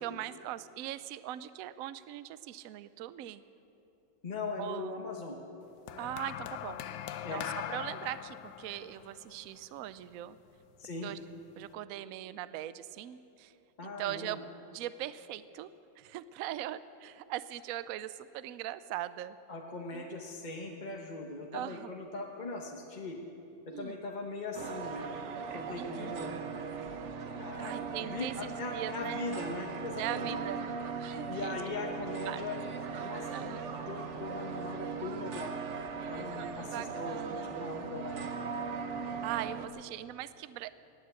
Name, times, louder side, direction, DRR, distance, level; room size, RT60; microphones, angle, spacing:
voice 1, 0.0-3.4 4.6-4.9 6.0-6.8 7.3-10.4 11.0-11.2 11.6-13.5 13.8-14.4 14.7-15.7 16.0-19.4 19.9-20.1 21.5-21.9 23.7-24.0 25.8-26.2 27.6-29.2 30.0-30.6 31.0-31.6 31.8-32.4 33.3-33.7 36.6-37.6 39.2-40.7, right 13 dB, 80° right, 15 dB, 0.7 m, -40 dB
voice 2, 4.2-5.4 7.2-7.4 10.8-11.1 13.8-14.4 19.5-23.2 23.7-26.3 27.3-30.4 31.3-32.6 33.0-35.6 36.1-38.3, left 3 dB, 30° left, 0 dB, 0.9 m, -40 dB
sound 1, 5.9-10.3 11.2-11.5, left 11 dB, 75° left, 1.1 m, -41 dB
sound 2, 24.5-39.7, right 5 dB, 50° right, 0.9 m, -39 dB
18.5 x 9.5 x 7.7 m, 2.8 s
omnidirectional pair, 2.0 m